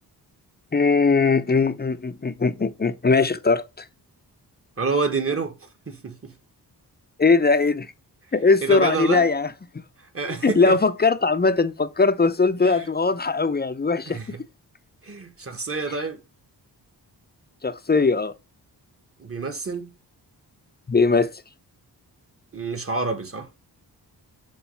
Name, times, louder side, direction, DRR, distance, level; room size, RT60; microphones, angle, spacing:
voice 1, 0.7-3.8 7.2-7.9 8.3-9.5 10.2-14.2 15.9-16.0 17.6-18.3 20.9-21.3, left 4 dB, 25° left, 0.6 m, -20 dB
voice 2, 4.8-5.5 5.9-6.3 8.6-9.3 10.1-10.8 12.6-12.9 14.1-14.4 15.0-16.2 19.2-19.9 22.5-23.5, right 4 dB, 35° right, 1.5 m, -28 dB
7.0 x 3.1 x 5.5 m
cardioid pair, 65°, 41 cm